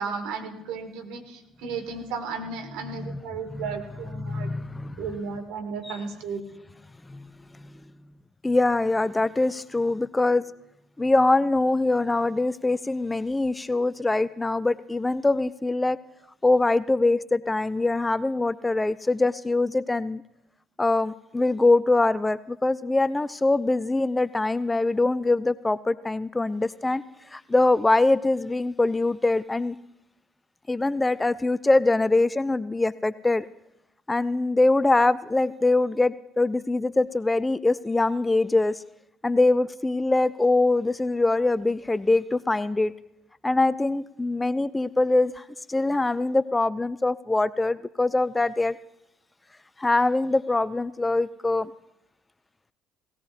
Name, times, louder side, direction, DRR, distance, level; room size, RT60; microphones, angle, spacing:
voice 1, 0.0-4.5 5.0-6.4, right 5 dB, 70° right, 6 dB, 1.5 m, -34 dB
voice 2, 2.9-3.2 3.5-3.6 4.1-5.0 5.8-6.0 7.1-7.2 7.6-7.7 8.4-10.5 11.0-16.0 16.4-20.2 20.8-27.0 27.3-29.8 30.7-33.5 34.1-38.8 39.2-42.9 43.4-48.8 49.8-51.7, left 2 dB, 15° left, 17 dB, 0.4 m, -23 dB
18.0 x 17.0 x 2.5 m, 0.84 s
hypercardioid pair, 55°, 0 cm